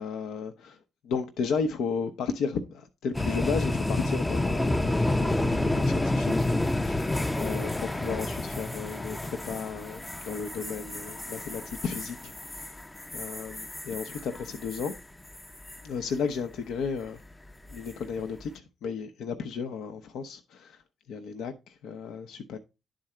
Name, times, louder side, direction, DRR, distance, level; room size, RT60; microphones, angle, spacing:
voice 1, 0.0-7.1 7.4-12.8 13.1-14.9 15.8-17.2 17.7-20.8 21.1-22.6, left 5 dB, 75° left, 0.7 m, -34 dB
sound 1, 3.1-15.0 15.3-15.8 17.7-18.0, left 2 dB, 15° left, 0.5 m, -30 dB
10.5 x 3.8 x 4.3 m
supercardioid pair, 55°, 0 cm